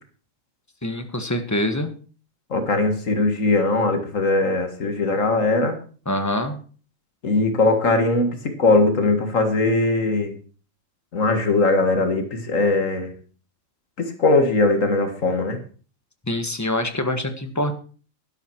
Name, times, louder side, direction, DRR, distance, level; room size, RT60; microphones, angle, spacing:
voice 1, 0.8-1.9 6.1-6.6 16.3-17.7, left 1 dB, 15° left, 7 dB, 1.4 m, -25 dB
voice 2, 2.5-5.8 7.2-10.3 11.1-13.1 14.0-15.6, left 2 dB, 75° left, 6 dB, 2.1 m, -20 dB
11.5 x 11.5 x 4.6 m, 0.40 s
omnidirectional pair, 1.4 m